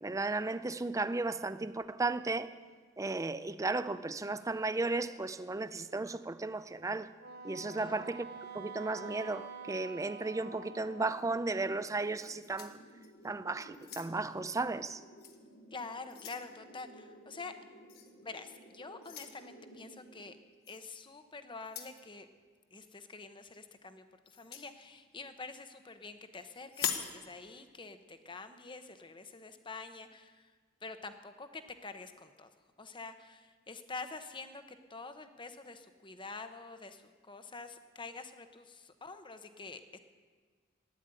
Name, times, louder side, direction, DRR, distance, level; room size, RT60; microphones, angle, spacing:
voice 1, 0.0-2.5 3.0-7.1 7.4-8.3 8.5-12.8 13.2-15.0, right 3 dB, 15° right, 0.5 m, -35 dB
Wind instrument woodwind instrument, 7.2-11.7, right 4 dB, 50° right, 0.8 m, -47 dB
sound 1, 10.3-20.3, right 1 dB, 70° left, 2.8 m, -57 dB
sound 2, 12.2-13.3 13.7-14.4 15.2-15.4 15.8-16.5 17.9-18.1 19.0-19.4 20.6-20.8 21.6-22.0 24.3-24.7 26.7-27.2, left 8 dB, 50° left, 1.2 m, -41 dB
voice 2, 15.7-17.5 18.2-20.4 20.7-22.3 22.7-30.5 30.8-32.5 32.8-40.0, left 3 dB, 25° left, 0.9 m, -47 dB
12.5 x 10.0 x 8.9 m
head